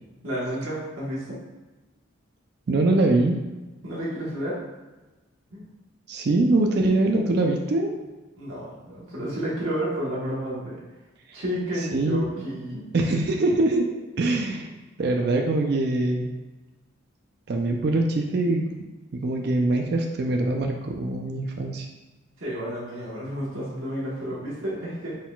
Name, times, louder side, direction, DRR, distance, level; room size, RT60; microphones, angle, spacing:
voice 1, 0.2-1.4 3.8-4.6 5.5-5.7 8.4-10.8 11.3-12.9 22.4-25.2, equal, 85° right, -7 dB, 1.2 m, -31 dB
voice 2, 2.7-3.4 6.1-7.9 11.3-11.4 11.9-12.4 12.9-13.9 14.2-14.7 15.0-16.3 17.5-18.7 19.1-21.9, right 2 dB, 50° right, 2 dB, 0.4 m, -23 dB
4.2 x 3.7 x 2.3 m, 1.2 s
head